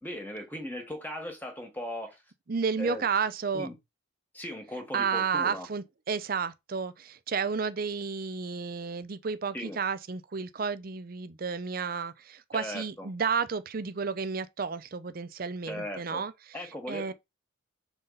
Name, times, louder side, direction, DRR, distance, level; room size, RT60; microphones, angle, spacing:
voice 1, 0.0-2.2 2.8-3.0 3.5-3.7 4.3-5.7 9.5-9.8 12.5-13.1 15.7-16.2 16.5-17.1, left 1 dB, 10° left, 1.4 m, -38 dB
voice 2, 2.5-3.7 4.9-16.3 16.9-17.1, right 5 dB, 45° right, 0.5 m, -31 dB
6.9 x 3.9 x 4.0 m
head